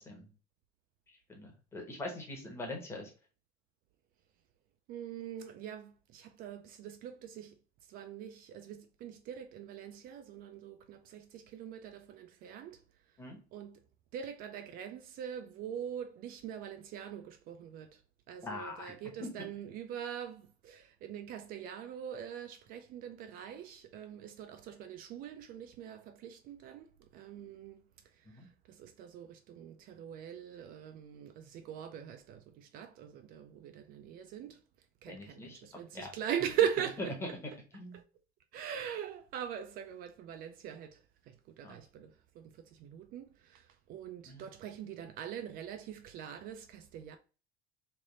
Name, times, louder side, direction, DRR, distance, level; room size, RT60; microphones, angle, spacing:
voice 1, 1.3-3.1 13.2-13.4 18.4-18.9 19.2-19.3 28.3-28.5 35.1-36.1 37.2-37.3 37.7-38.0 41.6-41.8 44.3-44.4, left 2 dB, 10° left, 1.0 m, -43 dB
voice 2, 4.9-7.6 7.9-12.8 13.5-13.8 14.1-18.0 18.3-27.8 28.2-34.6 35.0-37.1 37.9-38.0 38.5-47.2, right 9 dB, 45° right, 0.4 m, -42 dB
3.3 x 2.5 x 3.8 m
cardioid pair, 165°, 21 cm